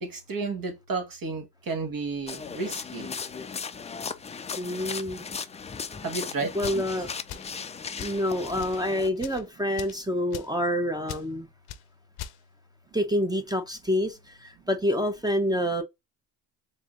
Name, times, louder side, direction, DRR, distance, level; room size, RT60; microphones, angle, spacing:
voice 1, 0.0-3.1 6.0-6.8, right 4 dB, 50° right, 1.6 m, -32 dB
sound 1, 2.3-9.1, left 5 dB, 15° left, 0.3 m, -37 dB
voice 2, 4.6-5.2 6.5-7.1 7.9-11.5 12.9-15.8, equal, 10° right, 0.7 m, -27 dB
sound 2, 6.6-6.9 7.3-7.6 8.0-8.2 8.6-8.8 9.2-9.4 9.8-10.0 10.3-10.6 11.1-11.3 11.7-11.8 12.2-12.4, left 11 dB, 60° left, 0.6 m, -40 dB
3.7 x 3.3 x 2.5 m
supercardioid pair, 75°, 42 cm